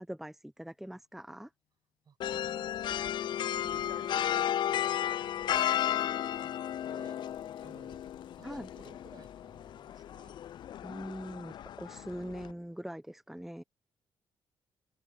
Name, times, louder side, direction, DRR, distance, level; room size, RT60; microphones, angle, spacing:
voice 1, 0.1-1.5 8.4-8.7 10.8-13.6, equal, 5° right, 0.9 m, -42 dB
Printer, 0.6-1.9 2.1-11.7, left 13 dB, 85° left, 5.7 m, -68 dB
voice 2, 2.0-7.2 7.6-8.0 8.4-10.4, right 7 dB, 55° right, 7.9 m, -57 dB
sound 1, 2.2-12.5, left 11 dB, 60° left, 0.4 m, -34 dB
open air
cardioid pair, 75°, 9 cm